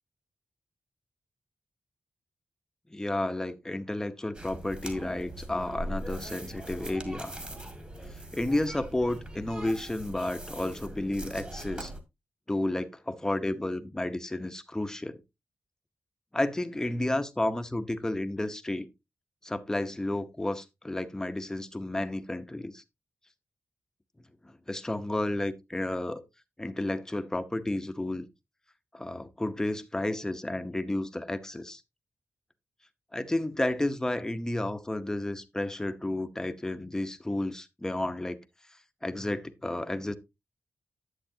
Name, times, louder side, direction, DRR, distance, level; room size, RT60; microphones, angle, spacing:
voice 1, 2.9-7.4 8.3-11.9 12.5-15.2 16.3-18.9 19.4-22.8 24.4-26.2 26.6-28.3 28.9-31.8 33.1-38.4 39.0-40.1, left 1 dB, 10° left, 0.9 m, -32 dB
sound 1, 4.3-12.0, right 1 dB, 25° right, 2.1 m, -41 dB
10.5 x 8.1 x 2.8 m
wide cardioid pair, 105°, 5 cm